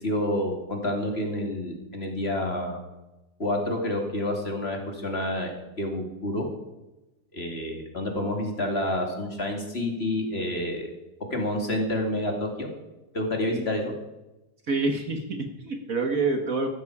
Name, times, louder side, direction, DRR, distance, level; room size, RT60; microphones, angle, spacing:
voice 1, 0.0-2.8 3.4-5.5 5.8-6.5 7.3-10.9 11.3-12.7 13.1-13.9, left 1 dB, 35° left, 2 dB, 2.7 m, -28 dB
voice 2, 14.7-16.7, right 3 dB, 50° right, 5 dB, 1.8 m, -27 dB
15.5 x 12.5 x 4.8 m, 1.0 s
omnidirectional pair, 2.0 m